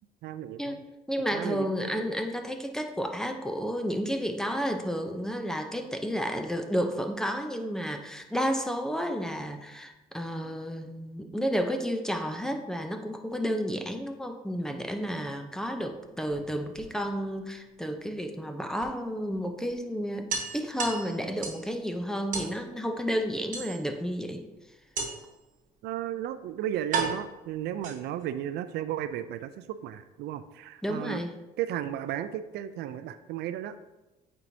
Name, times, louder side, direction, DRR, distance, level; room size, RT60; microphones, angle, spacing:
voice 1, 0.2-0.8 1.3-2.0 25.8-31.2 31.6-33.8, right 11 dB, 75° right, 12 dB, 0.4 m, -34 dB
voice 2, 1.1-24.4 30.8-31.3, equal, 5° left, 5 dB, 0.6 m, -31 dB
sound 1, 16.3-17.3 18.8-18.9 19.3-19.4 19.7-19.8 20.3-21.7 22.3-22.6 23.5-24.1 25.0-25.4 26.2-26.3 26.9-28.3, right 4 dB, 50° right, 1.3 m, -34 dB
8.5 x 4.6 x 2.7 m, 1.0 s
cardioid pair, 110°, 17 cm